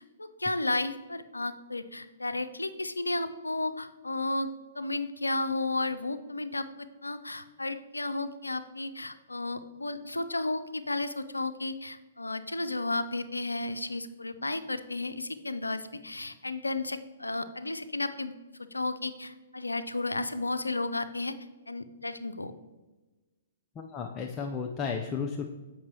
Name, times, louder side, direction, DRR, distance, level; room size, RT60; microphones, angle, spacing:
voice 1, 0.0-18.3 18.6-21.3 21.7-22.5, left 2 dB, 85° left, 11 dB, 0.4 m, -33 dB
voice 2, 23.8-25.4, left 5 dB, 20° left, 2 dB, 0.4 m, -33 dB
7.2 x 5.4 x 3.1 m, 1.2 s
figure-of-eight pair, 120°, 0 cm